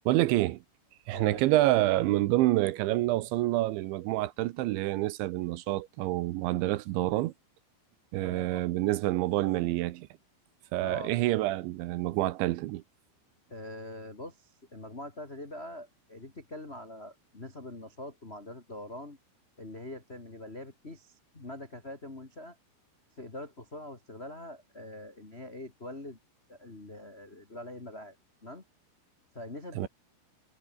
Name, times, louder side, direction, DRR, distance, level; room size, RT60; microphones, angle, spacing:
voice 1, 0.1-0.6 1.1-7.3 8.1-10.1 10.7-12.8 29.8-29.9, right 17 dB, 75° right, 3.0 m, -27 dB
voice 2, 1.1-1.4 8.2-8.7 10.8-11.1 13.5-19.2 19.6-22.6 23.2-26.2 26.5-28.1 28.4-28.6 29.3-29.9, left 1 dB, 40° left, 0.9 m, -43 dB
omnidirectional pair, 5.7 m